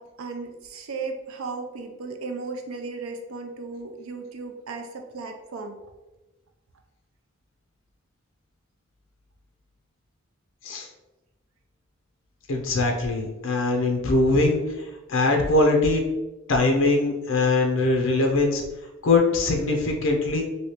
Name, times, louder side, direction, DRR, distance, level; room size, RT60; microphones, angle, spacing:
voice 1, 0.0-5.8, right 4 dB, 90° right, 5 dB, 0.5 m, -35 dB
voice 2, 12.5-16.0 16.5-18.6 19.0-20.4, left 2 dB, 65° left, 1 dB, 0.5 m, -22 dB
3.1 x 2.7 x 2.8 m, 1.1 s
head